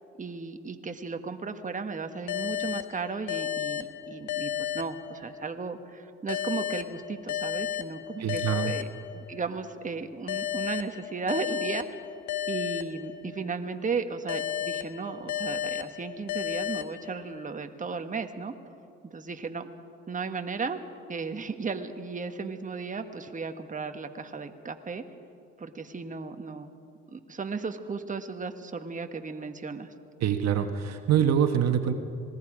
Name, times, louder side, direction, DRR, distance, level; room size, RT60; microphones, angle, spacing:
voice 1, 0.2-8.9 9.1-11.9 12.5-18.5 19.0-19.7 20.1-20.8 21.1-25.0 25.6-26.7 27.1-29.9, right 4 dB, 25° right, 6 dB, 1.5 m, -35 dB
sound 1, 2.3-5.6 6.3-9.6 10.3-13.6 14.3-17.6, left 10 dB, 75° left, 1.3 m, -34 dB
voice 2, 8.2-8.7 30.2-31.9, right 9 dB, 60° right, 7 dB, 1.3 m, -25 dB
26.5 x 20.0 x 5.1 m, 2.5 s
supercardioid pair, 70°, 29 cm